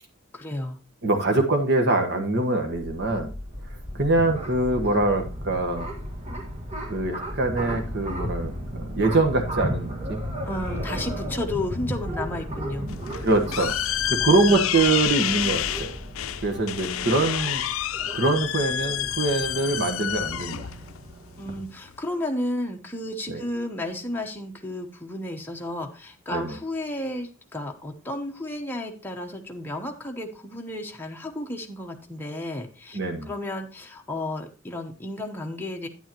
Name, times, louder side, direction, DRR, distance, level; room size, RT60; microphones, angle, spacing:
voice 1, 0.3-0.8 10.4-12.9 14.4-14.7 16.9-17.1 21.4-33.0 33.3-35.9, left 1 dB, 10° left, 1 dB, 0.9 m, -32 dB
voice 2, 1.0-3.3 3.9-5.9 6.9-10.2 12.8-15.9 16.4-17.6 18.1-20.7 23.3-23.4 26.3-26.5 32.9-33.3, right 2 dB, 55° right, 4 dB, 1.4 m, -24 dB
sound 1, 2.7-19.3, left 1 dB, 70° right, 3.1 m, -40 dB
sound 2, 3.5-21.6, equal, 30° right, 1.9 m, -36 dB
sound 3, 12.9-22.0, left 12 dB, 75° left, 0.5 m, -29 dB
9.1 x 9.1 x 3.0 m, 0.35 s
head